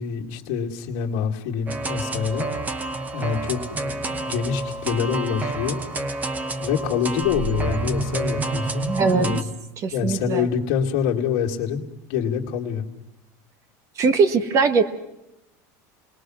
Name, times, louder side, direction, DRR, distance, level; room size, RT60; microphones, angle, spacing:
voice 1, 0.0-2.5 3.1-5.8 6.6-9.4 9.9-12.8, left 7 dB, 65° left, -1 dB, 2.2 m, -26 dB
sound 1, 1.7-9.4, right 2 dB, 20° right, 1.0 m, -28 dB
voice 2, 8.9-9.3 9.8-10.5 14.0-14.8, right 4 dB, 35° right, 11 dB, 1.6 m, -20 dB
29.5 x 20.5 x 6.3 m, 0.90 s
supercardioid pair, 150°, 9 cm